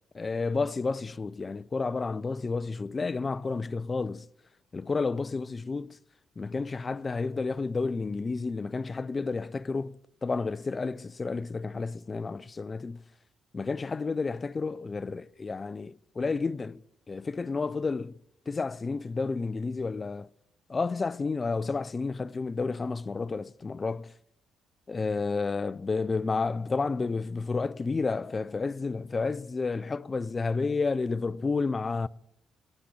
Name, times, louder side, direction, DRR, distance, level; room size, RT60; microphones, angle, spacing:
voice 1, 0.1-4.3 4.7-6.0 6.4-13.0 13.5-16.8 17.1-18.1 18.5-20.3 20.7-24.1 24.9-32.1, left 4 dB, 30° left, 0.3 m, -31 dB
9.7 x 5.9 x 8.2 m
cardioid pair, 90°, 0 cm